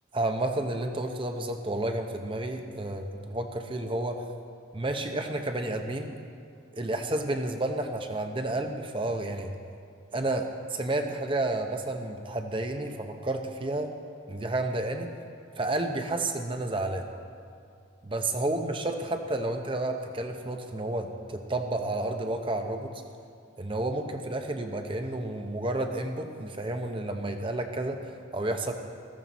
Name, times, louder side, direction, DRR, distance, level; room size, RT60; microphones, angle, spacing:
voice 1, 0.1-4.2 4.7-6.1 6.7-9.5 10.1-13.9 14.3-15.1 15.6-17.1 18.0-23.0 23.6-28.7, right 2 dB, 25° right, 5 dB, 0.8 m, -31 dB
15.0 x 14.0 x 4.1 m, 2.4 s
head